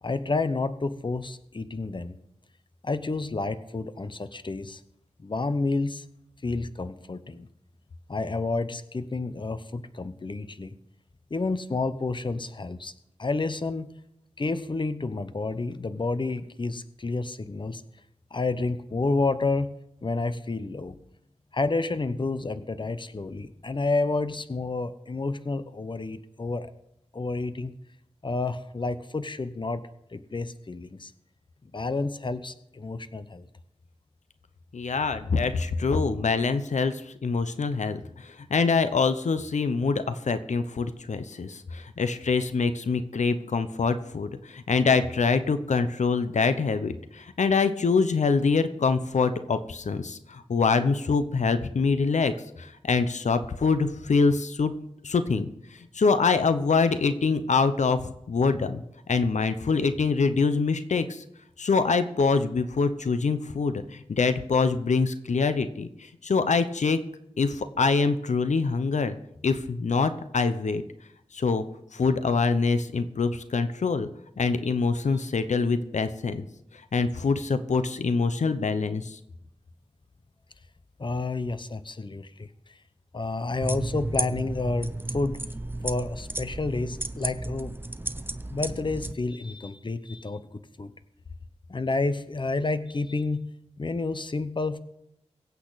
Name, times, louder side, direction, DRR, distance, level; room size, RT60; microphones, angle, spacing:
voice 1, 0.0-2.2 2.8-4.8 5.2-6.0 6.4-7.5 8.1-10.7 11.3-12.9 13.2-13.9 14.4-17.8 18.3-19.7 20.0-21.0 21.5-26.7 27.1-27.7 28.2-29.8 30.1-31.1 31.7-33.5 81.0-82.5 83.1-85.4 85.8-87.7 88.5-90.4 90.8-90.9 91.7-93.5 93.8-94.8, left 3 dB, 45° left, 12 dB, 0.8 m, -30 dB
voice 2, 34.7-54.7 55.0-55.5 55.9-58.8 59.1-61.2 61.6-67.0 67.4-69.1 69.4-70.8 71.3-71.6 71.9-74.1 74.4-76.5 76.9-79.2, left 4 dB, 90° left, 10 dB, 0.8 m, -25 dB
sound 1, 83.6-89.1, right 2 dB, 20° right, 0.7 m, -33 dB
22.5 x 8.3 x 4.1 m, 0.79 s
wide cardioid pair, 75°, 12 cm